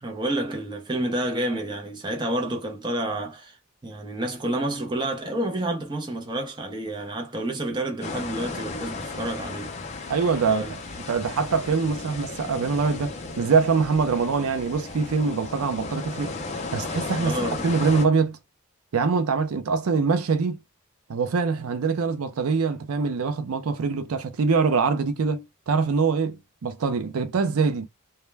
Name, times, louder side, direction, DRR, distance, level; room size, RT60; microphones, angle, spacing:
voice 1, 0.0-3.6 3.8-9.7 10.5-10.7 17.2-17.7, right 1 dB, 20° right, 0.5 m, -29 dB
sound 1, 8.0-18.1, left 3 dB, 30° left, 0.5 m, -35 dB
voice 2, 10.1-10.7 11.1-16.3 16.7-17.4 17.6-18.4 18.9-20.6 21.1-27.9, right 5 dB, 85° right, 0.5 m, -24 dB
2.2 x 2.1 x 3.1 m
head